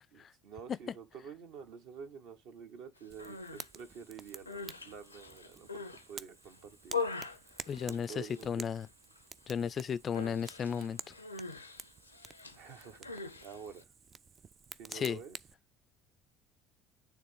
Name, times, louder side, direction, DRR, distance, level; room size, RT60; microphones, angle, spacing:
voice 1, 0.1-7.0 7.3-7.4 7.9-8.6 12.5-13.9 14.7-15.4, right 7 dB, 60° right, 1.1 m, -49 dB
Human voice, 3.1-3.7 4.3-6.1 6.5-8.5 8.7-9.2 9.5-9.7 10.2-13.8, left 4 dB, 85° left, 0.5 m, -42 dB
Fire, 3.1-15.5, right 6 dB, 35° right, 0.4 m, -51 dB
voice 2, 7.7-8.9 9.5-11.1 14.9-15.2, left 7 dB, 35° left, 0.3 m, -34 dB
9.4 x 3.5 x 3.4 m
figure-of-eight pair, 60°, 0 cm